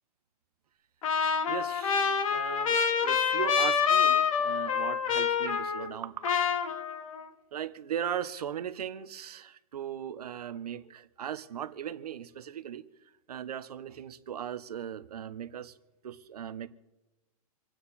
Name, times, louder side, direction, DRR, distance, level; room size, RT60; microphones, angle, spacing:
Trumpet, 1.0-6.0 6.2-7.2, left 7 dB, 60° left, 1.7 m, -27 dB
voice 1, 1.5-6.4 7.5-12.9 13.3-15.7 16.0-16.7, right 9 dB, 90° right, 12 dB, 1.2 m, -38 dB
27.5 x 9.3 x 4.3 m, 1.1 s
hypercardioid pair, 170°, 19 cm